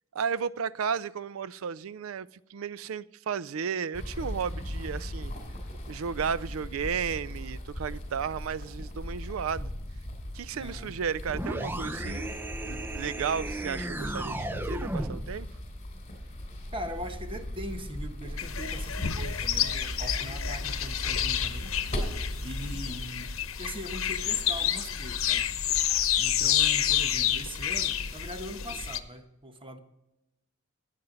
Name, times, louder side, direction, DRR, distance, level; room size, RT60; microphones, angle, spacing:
voice 1, 0.1-5.3 5.9-9.7 10.3-12.4 12.6-15.5, right 6 dB, 90° right, 0.4 m, -33 dB
sound 1, 3.9-22.9, left 1 dB, 35° left, 3.0 m, -38 dB
voice 2, 10.5-10.9 16.7-21.8 22.4-25.5 26.2-29.8, equal, 25° right, 1.1 m, -41 dB
sound 2, 11.2-15.4, right 1 dB, 10° right, 0.6 m, -35 dB
sound 3, 18.4-29.0, left 10 dB, 85° left, 0.9 m, -29 dB
15.0 x 9.3 x 3.9 m
head